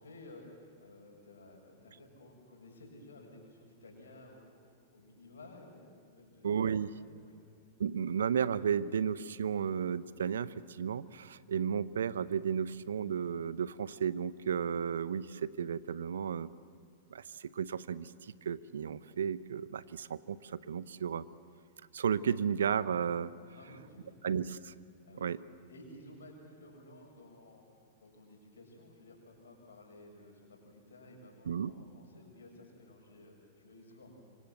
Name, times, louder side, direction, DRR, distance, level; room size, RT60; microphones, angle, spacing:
voice 1, 0.0-4.5 4.9-7.4 23.5-24.2 25.0-25.3 25.7-27.6 28.0-34.2, left 1 dB, 75° left, 1 dB, 7.1 m, -54 dB
voice 2, 6.4-6.9 7.8-16.5 17.1-21.2 21.9-23.3 24.2-24.7 25.2-25.4 31.5-31.7, right 7 dB, 70° right, 18 dB, 0.7 m, -33 dB
26.0 x 25.0 x 7.9 m, 2.1 s
figure-of-eight pair, 100°, 0 cm